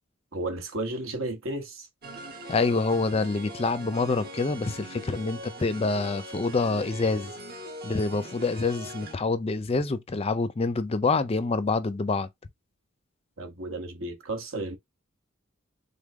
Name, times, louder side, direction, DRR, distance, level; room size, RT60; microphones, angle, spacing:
voice 1, 0.3-1.9 13.4-14.7, right 2 dB, 65° right, 1.2 m, -33 dB
sound 1, 2.0-9.1, right 1 dB, 50° right, 1.3 m, -41 dB
voice 2, 2.5-7.3 7.8-12.3, left 3 dB, 30° left, 0.4 m, -26 dB
3.9 x 3.6 x 3.6 m
head